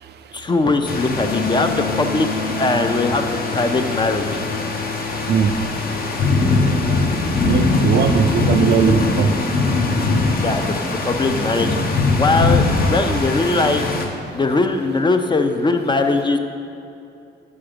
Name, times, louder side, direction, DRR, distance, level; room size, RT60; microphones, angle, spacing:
voice 1, 0.3-4.4 10.4-13.8 14.3-16.4, left 3 dB, 25° left, 6 dB, 0.5 m, -20 dB
sound 1, 0.8-14.0, left 3 dB, 50° left, 0.8 m, -21 dB
sound 2, 1.2-11.3, left 6 dB, 80° left, 1.1 m, -32 dB
voice 2, 5.2-5.6 6.7-6.8 7.4-9.4 10.0-10.1, right 7 dB, 55° right, 8 dB, 0.5 m, -19 dB
7.0 x 4.8 x 5.1 m, 2.7 s
cardioid pair, 90°, 20 cm